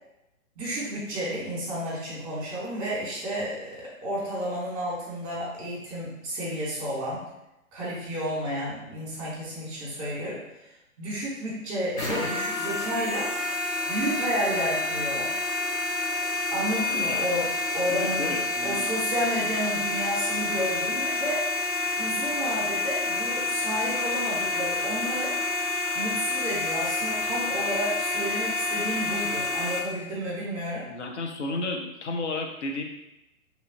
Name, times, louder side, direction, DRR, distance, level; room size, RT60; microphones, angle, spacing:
voice 1, 0.6-7.3 7.7-10.4 11.0-13.3 13.9-15.4 16.5-21.4 22.0-25.4 25.9-30.9, equal, 25° right, -5 dB, 1.1 m, -31 dB
sound 1, 12.0-29.8, left 3 dB, 40° left, 1.0 m, -28 dB
voice 2, 17.9-18.9 30.9-32.8, left 3 dB, 55° left, 3 dB, 0.5 m, -32 dB
3.0 x 2.3 x 2.6 m, 0.90 s
figure-of-eight pair, 120°, 43 cm